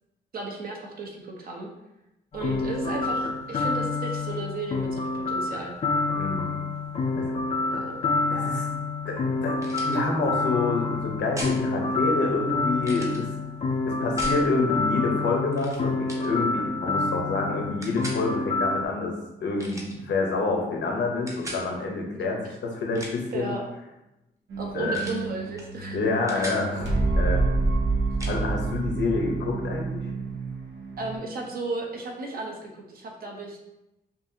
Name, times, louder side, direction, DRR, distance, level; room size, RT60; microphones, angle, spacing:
voice 1, 0.3-1.7 2.3-5.8 7.7-8.1 22.4-22.5 23.3-23.6 24.6-26.0 26.3-26.4 31.0-33.6, right 3 dB, 55° right, 1 dB, 0.8 m, -34 dB
sound 1, 2.3-18.8, left 3 dB, 35° left, 0.4 m, -28 dB
voice 2, 6.2-6.6 7.2-7.7 8.3-8.7 9.0-13.3 13.8-19.1 19.4-23.5 24.7-25.0 25.9-27.4 28.2-30.1, left 3 dB, 85° left, 1 dB, 0.9 m, -28 dB
sound 2, 9.6-10.0 11.4-11.6 12.8-13.2 14.2-14.4 15.5-15.8 16.1-16.3 17.8-18.2 19.6-20.0 21.3-21.6 22.8-23.3 24.9-25.2 25.6-25.7 26.0-26.6 28.2-28.4, right 1 dB, 15° right, 0.7 m, -37 dB
sound 3, 24.5-31.2, right 3 dB, 85° right, 0.9 m, -28 dB
5.5 x 2.5 x 2.7 m, 0.93 s
wide cardioid pair, 165°, 18 cm